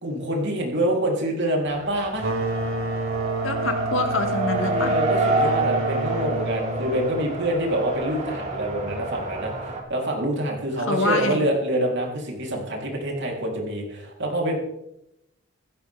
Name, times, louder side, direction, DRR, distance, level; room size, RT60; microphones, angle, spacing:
voice 1, 0.0-2.3 4.5-14.5, right 1 dB, 60° right, 0 dB, 3.8 m, -26 dB
Race car auto racing, 1.6-9.8, right 2 dB, 35° right, 2.8 m, -28 dB
sound 1, 2.2-7.6, right 2 dB, 85° right, 2.0 m, -29 dB
voice 2, 3.4-4.9 10.9-11.4, left 2 dB, 70° left, 4 dB, 2.5 m, -25 dB
16.0 x 15.0 x 3.6 m, 0.83 s
head